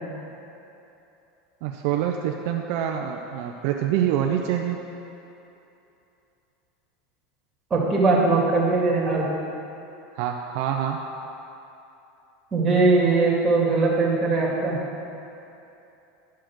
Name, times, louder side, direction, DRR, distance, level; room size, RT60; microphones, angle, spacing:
voice 1, 1.6-4.8 10.1-11.0, right 10 dB, 65° right, 2 dB, 0.6 m, -26 dB
voice 2, 7.7-9.2 12.5-14.8, right 3 dB, 20° right, -4 dB, 2.1 m, -20 dB
11.5 x 4.7 x 6.1 m, 2.9 s
supercardioid pair, 130°, 0 cm